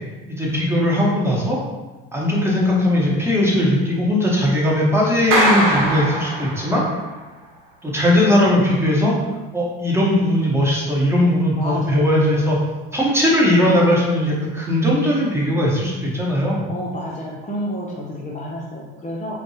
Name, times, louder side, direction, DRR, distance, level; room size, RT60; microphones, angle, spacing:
voice 1, 0.3-1.6 2.1-6.8 7.8-9.2 9.5-12.6 12.9-16.6, left 1 dB, 10° right, -4 dB, 1.1 m, -18 dB
Clapping, 5.3-7.0, right 1 dB, 65° right, 1.0 m, -21 dB
voice 2, 11.6-12.3 16.7-19.4, equal, 25° left, -4 dB, 0.6 m, -30 dB
4.4 x 2.2 x 2.8 m, 1.2 s
hypercardioid pair, 80°, 30 cm